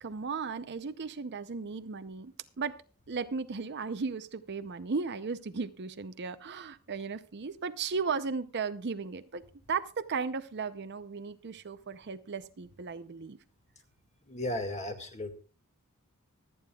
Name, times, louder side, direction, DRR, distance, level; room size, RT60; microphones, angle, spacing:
voice 1, 0.0-2.8 3.1-9.4 9.7-13.4, right 5 dB, 50° right, 11 dB, 0.6 m, -36 dB
voice 2, 14.2-15.3, left 1 dB, 30° left, 5 dB, 1.9 m, -35 dB
25.5 x 9.5 x 2.3 m, 0.35 s
head